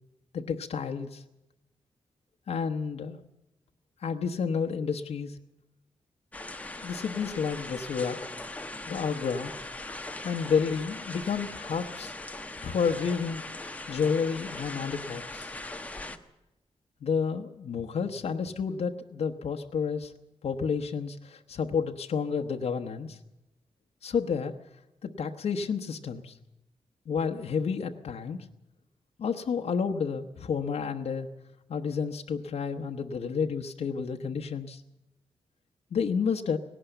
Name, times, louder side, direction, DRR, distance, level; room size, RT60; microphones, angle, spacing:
voice 1, 0.3-1.2 2.5-3.2 4.0-5.4 6.8-8.3 8.9-9.5 10.2-12.1 12.6-13.4 13.9-15.5 17.0-20.1 20.4-23.2 24.0-24.5 25.0-26.4 27.1-28.4 29.2-31.3 31.7-34.8 35.9-36.6, left 6 dB, 75° left, 3 dB, 1.0 m, -30 dB
sound 1, 6.3-16.2, left 2 dB, 15° left, 1.1 m, -40 dB
18.5 x 17.5 x 7.9 m, 0.92 s
wide cardioid pair, 170°, 11 cm